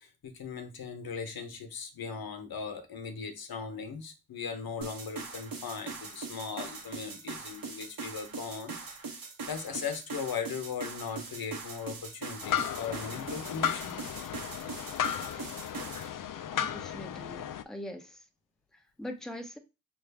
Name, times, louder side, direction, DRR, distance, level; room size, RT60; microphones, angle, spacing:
voice 1, 0.0-8.7 9.5-14.0, left 6 dB, 85° left, 0.9 m, -38 dB
sound 1, 4.8-16.1, right 4 dB, 70° right, 1.1 m, -41 dB
sound 2, 12.4-17.6, left 9 dB, 65° left, 0.5 m, -34 dB
voice 2, 16.5-18.2 19.0-19.6, left 1 dB, ahead, 0.9 m, -42 dB
6.1 x 2.4 x 3.4 m
cardioid pair, 60°, 35 cm